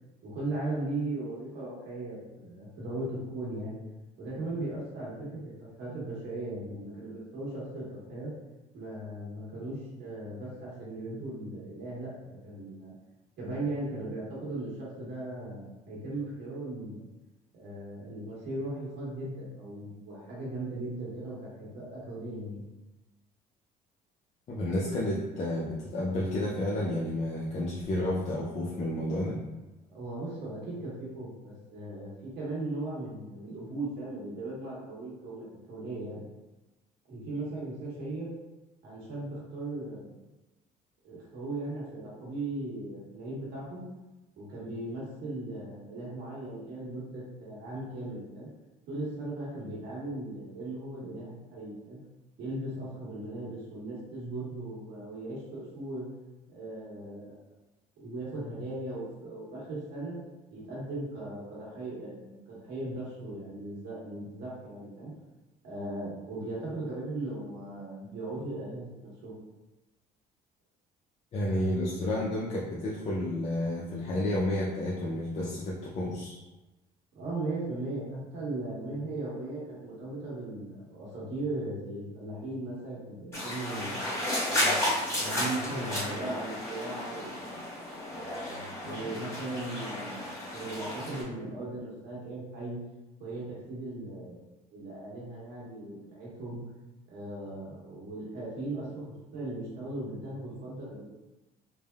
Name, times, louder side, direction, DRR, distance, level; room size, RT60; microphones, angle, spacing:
voice 1, 0.2-3.8 4.2-5.4 5.8-8.3 8.7-12.1 12.4-12.9 13.4-17.1 17.5-22.6 29.9-36.2 37.1-38.3 38.8-40.1 41.0-43.8 44.4-48.5 48.9-52.0 52.4-56.1 56.5-57.4 58.0-60.2 60.5-65.1 65.6-68.9 69.2-69.4 77.1-84.0 84.5-84.9 85.2-87.6 88.1-92.8 93.2-96.6 97.1-99.0 99.3-101.0, right 2 dB, 80° right, -6 dB, 1.2 m, -38 dB
voice 2, 24.5-29.4 71.3-76.4, left 1 dB, 40° left, -5 dB, 0.5 m, -31 dB
sound 1, 83.3-91.2, left 1 dB, 15° left, 1.2 m, -33 dB
3.3 x 2.1 x 2.3 m, 1.1 s
cardioid pair, 110°, 17 cm